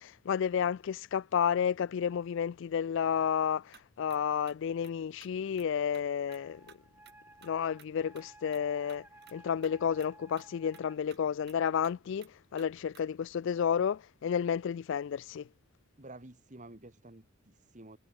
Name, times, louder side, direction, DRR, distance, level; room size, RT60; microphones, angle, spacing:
voice 1, 0.0-6.7 7.4-9.1 9.3-15.5, left 7 dB, 60° left, 0.3 m, -31 dB
sound 1, 3.4-3.8 4.1-4.2 4.5-5.7 5.9-6.4 6.7-7.2 7.4-9.4 9.6-9.7 10.0-10.1 10.4-13.2, right 8 dB, 50° right, 3.3 m, -58 dB
Wind instrument woodwind instrument, 6.3-11.0, right 2 dB, 10° right, 4.3 m, -57 dB
voice 2, 16.0-18.0, right 2 dB, 35° right, 1.7 m, -51 dB
head